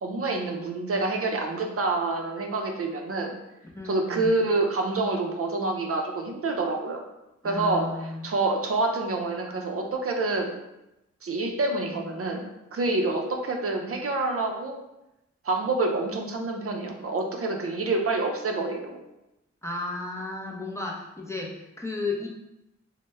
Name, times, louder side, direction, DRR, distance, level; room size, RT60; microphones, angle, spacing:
voice 1, 0.0-3.4 3.8-7.0 7.4-10.6 11.2-14.8 15.4-19.0, right 2 dB, 50° right, 2 dB, 0.5 m, -27 dB
voice 2, 3.8-4.3 7.4-8.3 19.6-22.3, left 3 dB, 10° left, -2 dB, 0.5 m, -33 dB
3.1 x 2.1 x 3.3 m, 0.91 s
wide cardioid pair, 80°, 29 cm